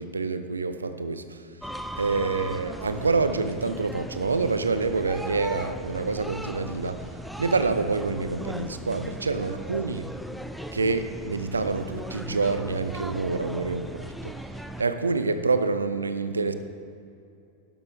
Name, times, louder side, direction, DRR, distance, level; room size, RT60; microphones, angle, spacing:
voice 1, 0.0-1.5 1.9-7.0 7.4-10.0 10.7-14.3 14.8-16.5, right 4 dB, 75° right, 10 dB, 0.6 m, -27 dB
sound 1, 1.6-14.8, right 1 dB, ahead, 0.5 m, -38 dB
12.0 x 11.0 x 3.5 m, 2.6 s
figure-of-eight pair, 90°, 0 cm